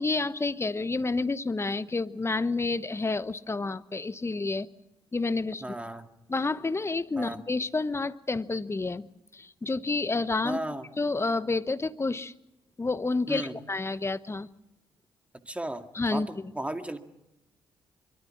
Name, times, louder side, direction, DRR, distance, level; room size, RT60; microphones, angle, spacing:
voice 1, 0.0-4.7 5.1-5.6 6.3-10.6 11.0-12.3 12.8-14.5 15.9-16.5, left 3 dB, 25° left, 14 dB, 1.1 m, -29 dB
voice 2, 5.6-6.1 7.2-7.4 10.4-10.9 13.3-13.6 15.4-17.0, right 1 dB, 10° right, 7 dB, 2.2 m, -35 dB
24.0 x 24.0 x 6.0 m, 0.89 s
hypercardioid pair, 40°, 11 cm